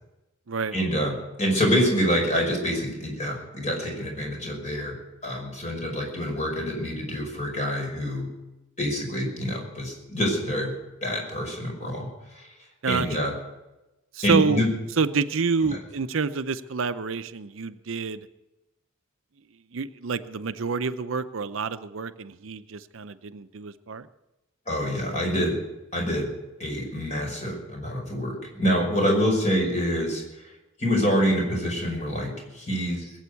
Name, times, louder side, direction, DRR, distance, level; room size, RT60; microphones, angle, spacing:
voice 1, 0.7-1.1 1.4-4.9 5.2-8.3 8.8-10.7 11.0-12.1 12.3-12.5 12.9-13.3 14.2-14.7 15.6-15.8 24.7-25.6 25.9-26.3 26.6-30.2 30.8-33.1, equal, 35° left, 1 dB, 5.5 m, -26 dB
voice 2, 12.8-13.3 14.1-14.6 15.0-18.3 19.7-24.1, right 5 dB, 65° right, 11 dB, 0.6 m, -28 dB
21.0 x 8.0 x 8.3 m, 0.98 s
head